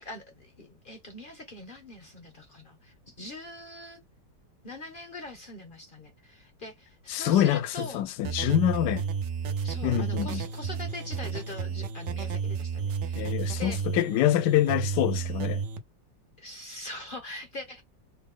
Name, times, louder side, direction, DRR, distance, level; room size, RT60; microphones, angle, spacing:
voice 1, 0.0-4.0 4.6-8.0 9.6-13.8 16.4-17.8, left 1 dB, 50° left, 0.6 m, -42 dB
voice 2, 7.1-9.0 9.8-10.4 13.2-15.6, left 12 dB, 75° left, 1.1 m, -25 dB
sound 1, 8.2-15.8, right 6 dB, 70° right, 0.6 m, -32 dB
4.0 x 2.1 x 3.6 m
omnidirectional pair, 1.9 m